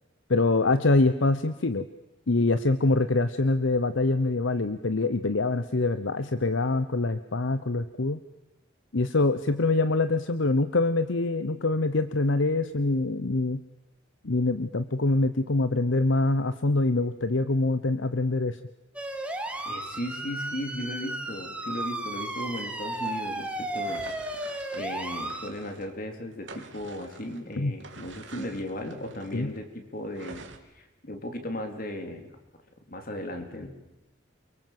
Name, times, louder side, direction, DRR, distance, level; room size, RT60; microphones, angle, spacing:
voice 1, 0.3-1.9 2.3-8.2 8.9-13.6 14.2-18.6 27.6-27.7 29.3-29.5, left 2 dB, 70° left, 12 dB, 0.9 m, -24 dB
sound 1, 19.0-25.5, right 1 dB, 5° right, 2.1 m, -34 dB
voice 2, 19.7-24.0 24.7-30.4 30.7-32.3 32.9-33.7, left 1 dB, 45° left, 5 dB, 3.9 m, -36 dB
sound 2, 22.8-26.0 26.3-29.6 30.1-30.6, right 4 dB, 65° right, 2.8 m, -48 dB
28.5 x 23.5 x 7.7 m, 0.98 s
head